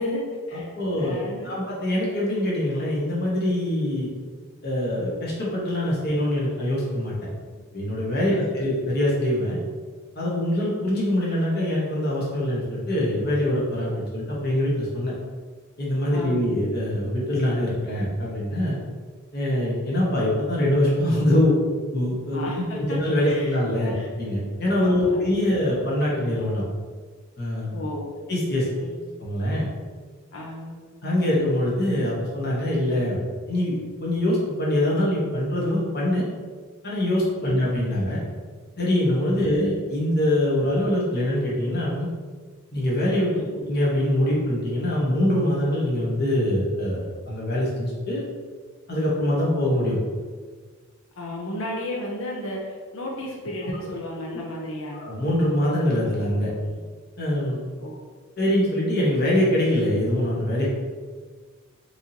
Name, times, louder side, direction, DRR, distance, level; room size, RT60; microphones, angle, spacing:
voice 1, 0.0-0.7 1.0-1.6 8.2-8.6 16.1-16.4 22.3-24.1 24.8-25.5 27.7-28.2 28.7-29.0 30.3-30.8 37.4-37.7 39.4-39.5 43.3-43.6 51.2-55.0 57.8-58.1, left 1 dB, 65° left, -2 dB, 0.6 m, -34 dB
voice 2, 0.8-1.2 1.4-4.1 4.6-7.1 7.7-9.6 10.2-15.1 15.8-18.7 19.3-21.5 21.9-23.9 24.2-26.6 27.4-27.8 28.3-28.7 29.2-29.7 31.0-33.2 33.5-36.2 36.8-38.2 38.8-42.1 42.7-48.2 48.9-50.0 54.9-56.5 57.2-57.6 58.4-60.7, left 1 dB, 45° left, -5 dB, 1.1 m, -24 dB
4.7 x 2.7 x 2.8 m, 1.5 s
head